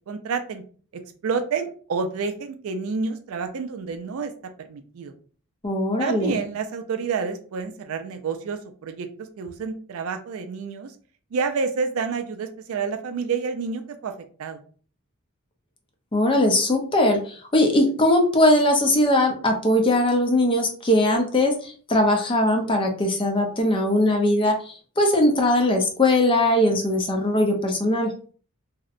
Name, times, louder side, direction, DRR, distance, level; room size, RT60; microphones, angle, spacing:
voice 1, 0.1-0.6 1.2-4.3 4.6-5.1 6.0-9.1 9.4-10.9 11.3-14.1 14.4-14.6, right 5 dB, 65° right, 6 dB, 0.4 m, -29 dB
voice 2, 5.6-6.4 16.1-28.1, left 1 dB, 25° left, 3 dB, 0.5 m, -20 dB
2.7 x 2.1 x 2.4 m, 0.42 s
head